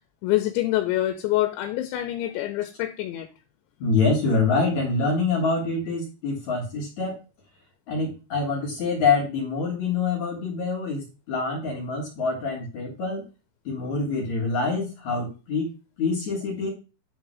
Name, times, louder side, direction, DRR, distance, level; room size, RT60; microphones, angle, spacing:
voice 1, 0.2-3.3, left 15 dB, 75° left, 6 dB, 2.9 m, -26 dB
voice 2, 3.8-7.2 7.9-13.2 13.7-15.7 16.0-16.7, left 4 dB, 60° left, -1 dB, 2.0 m, -25 dB
10.5 x 3.9 x 6.2 m, 0.32 s
omnidirectional pair, 5.7 m